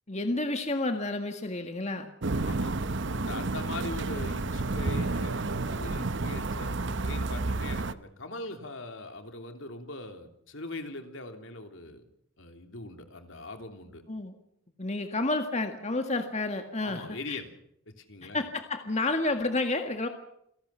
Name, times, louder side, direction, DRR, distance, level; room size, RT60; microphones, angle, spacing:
voice 1, 0.1-2.1 14.1-14.3 14.8-17.4 18.3-20.1, left 2 dB, 35° left, 6 dB, 1.8 m, -30 dB
sound 1, 2.2-7.9, right 3 dB, 60° right, 1.0 m, -30 dB
voice 2, 3.1-5.4 5.7-6.7 7.0-12.0 12.4-14.0 16.8-17.5 17.9-18.5, left 2 dB, 65° left, 6 dB, 3.2 m, -41 dB
28.5 x 18.0 x 5.7 m, 0.74 s
head